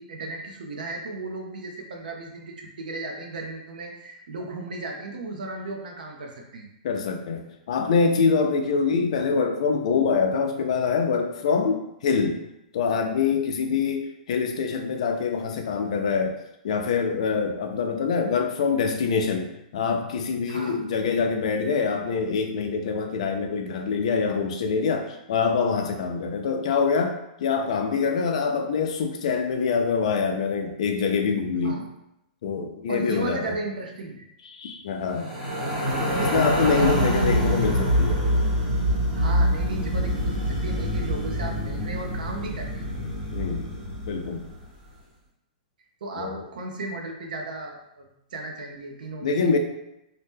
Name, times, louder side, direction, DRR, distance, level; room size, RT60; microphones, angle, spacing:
voice 1, 0.0-6.7 20.5-20.8 31.6-31.8 32.9-34.3 36.7-37.2 39.1-42.8 46.0-49.3, right 2 dB, 70° right, 2 dB, 0.5 m, -35 dB
voice 2, 6.8-12.4 12.7-16.4 16.6-31.8 32.4-33.6 34.5-35.3 36.2-38.2 43.3-43.7 44.1-44.4 46.2-46.5 49.2-49.6, left 5 dB, 45° left, 4 dB, 0.4 m, -25 dB
sound 1, 35.1-44.5, equal, 20° right, 0.9 m, -25 dB
2.8 x 2.0 x 3.4 m, 0.83 s
hypercardioid pair, 180°, 5 cm